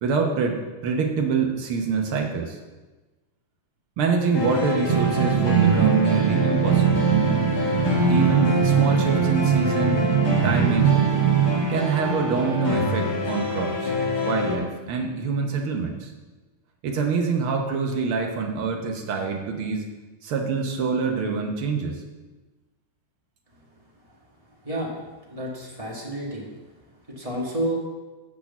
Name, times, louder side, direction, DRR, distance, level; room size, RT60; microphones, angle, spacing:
voice 1, 0.0-2.6 4.0-7.1 8.1-10.0 10.4-11.0 11.7-13.9 14.2-16.1 16.8-19.9 20.2-22.0, right 5 dB, 70° right, 2 dB, 1.2 m, -25 dB
sound 1, 4.3-14.5, left 3 dB, 40° left, 1.7 m, -26 dB
sound 2, 4.9-11.6, right 11 dB, 90° right, 2.2 m, -21 dB
voice 2, 25.3-26.5 27.1-27.8, right 1 dB, 20° right, -4 dB, 0.9 m, -29 dB
7.4 x 6.3 x 7.1 m, 1.2 s
omnidirectional pair, 3.6 m